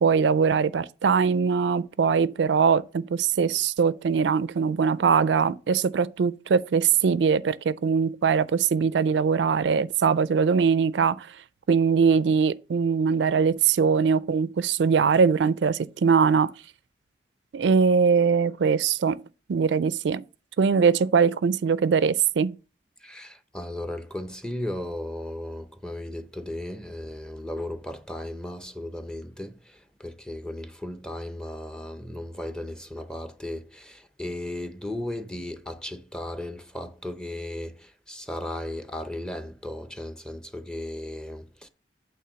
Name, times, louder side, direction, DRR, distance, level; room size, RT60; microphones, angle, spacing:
voice 1, 0.0-11.3 11.7-16.5 17.5-19.2 19.5-20.2 20.6-22.6, right 6 dB, 90° right, 0.4 m, -22 dB
voice 2, 23.0-41.7, left 1 dB, 5° left, 0.6 m, -36 dB
8.5 x 3.7 x 6.2 m
head